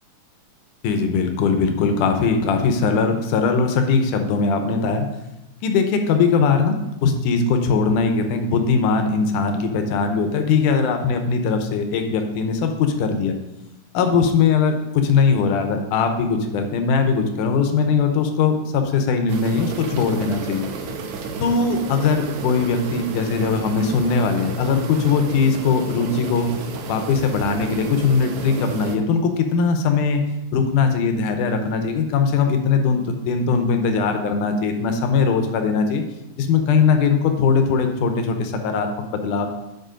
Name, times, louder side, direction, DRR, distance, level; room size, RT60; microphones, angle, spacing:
voice 1, 0.8-5.1 5.6-13.4 13.9-20.7 21.4-26.5 26.9-30.2 30.5-36.0 36.4-39.5, left 5 dB, 75° left, 6 dB, 2.2 m, -20 dB
sound 1, 19.3-29.0, right 4 dB, 80° right, 2.3 m, -32 dB
9.1 x 4.4 x 5.0 m, 0.95 s
omnidirectional pair, 3.8 m